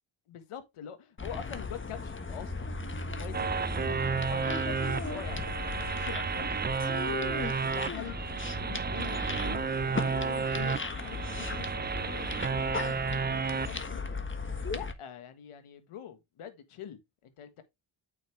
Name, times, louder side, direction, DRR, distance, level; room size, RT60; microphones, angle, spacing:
voice 1, 0.3-4.7 5.0-6.6 7.3-9.7 10.0-14.2 14.5-17.6, left 9 dB, 85° left, 1.7 m, -45 dB
sound 1, 1.2-14.9, left 3 dB, 25° left, 1.5 m, -37 dB
sound 2, 3.3-13.8, right 5 dB, 20° right, 0.4 m, -32 dB
8.5 x 6.5 x 3.4 m
cardioid pair, 80°, 50 cm